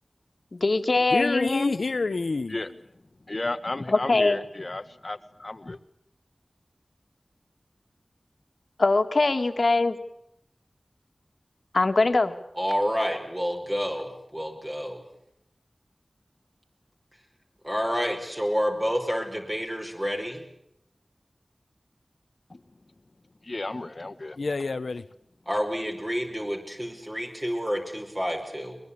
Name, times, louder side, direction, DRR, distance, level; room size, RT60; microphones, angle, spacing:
voice 1, 0.5-1.7 3.9-4.4 8.8-10.0 11.7-12.4, left 3 dB, 70° left, 7 dB, 1.9 m, -22 dB
voice 2, 1.1-2.6 24.4-25.0, left 3 dB, 85° left, 13 dB, 0.9 m, -28 dB
voice 3, 3.3-5.8 22.5-22.6 23.4-24.4, left 2 dB, 50° left, 10 dB, 1.5 m, -33 dB
voice 4, 12.6-15.0 17.6-20.4 25.5-28.8, equal, 20° right, 1 dB, 5.3 m, -29 dB
22.5 x 21.5 x 8.6 m, 0.76 s
wide cardioid pair, 45°, 0 cm